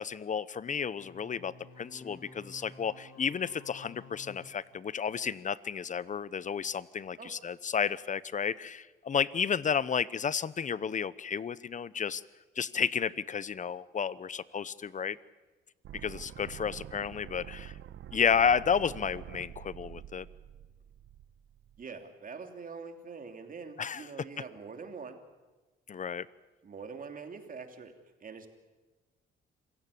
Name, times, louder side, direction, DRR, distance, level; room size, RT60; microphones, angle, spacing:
voice 1, 0.0-12.2 12.6-15.2 16.0-17.7 18.1-20.3 23.8-24.0 25.9-26.3, left 7 dB, 40° left, 19 dB, 0.8 m, -32 dB
sound 1, 0.9-5.4, left 3 dB, 80° left, 4.5 m, -53 dB
sound 2, 15.8-21.8, right 11 dB, 75° right, 1.1 m, -47 dB
voice 2, 21.8-25.2 26.6-27.9 28.2-28.5, right 5 dB, 45° right, 5 dB, 3.2 m, -44 dB
27.0 x 16.0 x 8.6 m, 1.2 s
cardioid pair, 90°, 20 cm